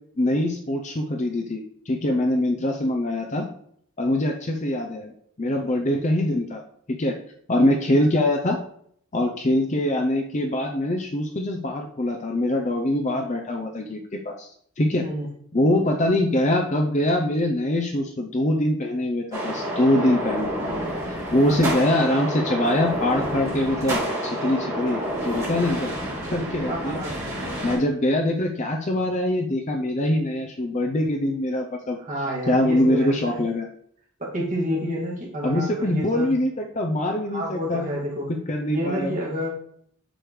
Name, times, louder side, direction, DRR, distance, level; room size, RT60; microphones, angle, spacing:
voice 1, 0.2-3.5 4.0-5.1 5.4-6.6 6.9-7.2 7.5-8.6 9.1-15.0 15.5-20.8 21.3-26.0 26.3-27.0 27.6-32.0 32.5-33.7 35.4-37.8 38.3-39.2, left 1 dB, 35° left, 3 dB, 0.6 m, -23 dB
sound 1, 19.3-27.8, right 1 dB, 15° right, 3.0 m, -29 dB
voice 2, 26.7-27.2 32.0-33.4 34.2-36.3 37.3-38.3 38.7-39.5, equal, 35° right, -3 dB, 2.1 m, -29 dB
7.8 x 6.6 x 3.2 m, 0.65 s
head